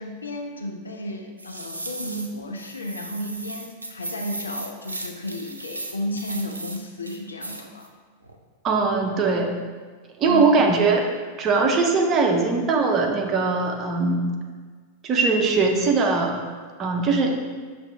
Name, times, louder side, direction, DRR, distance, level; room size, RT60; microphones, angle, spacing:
voice 1, 0.0-7.9 10.2-10.7, left 1 dB, 75° left, 3 dB, 0.5 m, -33 dB
sound 1, 1.4-2.3 2.6-6.8 7.0-7.9 8.2-8.4, right 2 dB, 80° right, 0.3 m, -36 dB
voice 2, 8.6-9.5 10.2-11.1 11.4-14.2 15.0-16.4 16.8-17.4, right 4 dB, 30° right, 2 dB, 0.6 m, -21 dB
5.8 x 2.6 x 3.4 m, 1.5 s
figure-of-eight pair, 90°, 0 cm